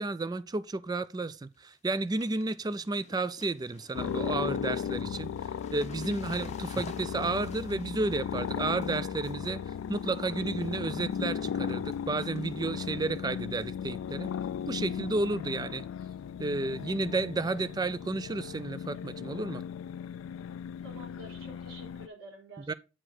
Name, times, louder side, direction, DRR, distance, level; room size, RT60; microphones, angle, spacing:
voice 1, 0.0-5.3 5.7-9.6 9.9-14.3 14.7-15.9 16.4-19.6 22.7-22.8, right 3 dB, 20° right, 0.4 m, -32 dB
sound 1, 1.2-1.3 1.5-10.8 11.1-11.5 11.9-12.7 13.0-13.1 14.1-14.4 14.6-14.7 15.1-15.2 16.8-16.9 17.6-17.7, left 3 dB, 35° left, 0.7 m, -52 dB
sound 2, 3.9-22.1, left 8 dB, 90° left, 0.3 m, -36 dB
voice 2, 20.8-22.8, right 1 dB, 75° right, 4.2 m, -49 dB
8.8 x 4.7 x 4.1 m
head